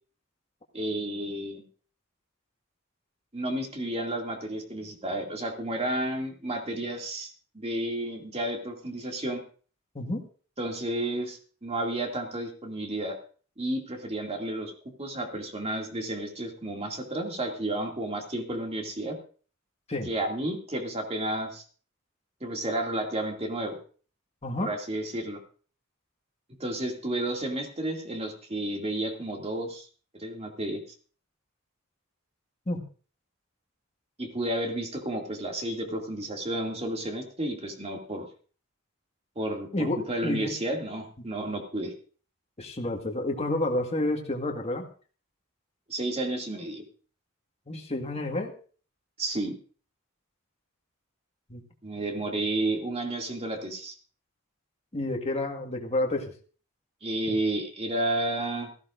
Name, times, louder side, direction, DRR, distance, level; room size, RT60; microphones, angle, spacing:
voice 1, 0.7-1.6 3.3-7.3 7.5-9.4 10.6-13.2 13.6-14.7 15.0-19.2 20.1-21.6 22.4-23.8 24.6-25.4 26.6-29.9 30.2-30.8 34.2-38.3 39.4-41.9 45.9-46.8 49.2-49.6 51.8-53.9 57.0-58.7, right 1 dB, 30° right, 2 dB, 2.5 m, -31 dB
voice 2, 39.7-40.5 42.6-44.9 47.7-48.5 51.5-51.6 54.9-56.3 57.3-57.4, left 1 dB, 30° left, 2 dB, 1.7 m, -30 dB
17.5 x 14.5 x 2.6 m, 0.40 s
head